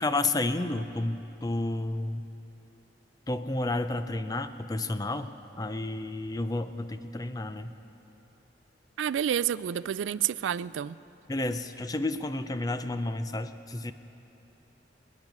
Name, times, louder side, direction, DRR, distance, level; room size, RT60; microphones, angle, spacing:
voice 1, 0.0-2.3 3.3-7.7 11.3-13.9, left 2 dB, 20° left, 10 dB, 0.5 m, -31 dB
voice 2, 9.0-11.0, right 9 dB, 85° right, 18 dB, 0.3 m, -29 dB
26.0 x 9.5 x 5.3 m, 3.0 s
head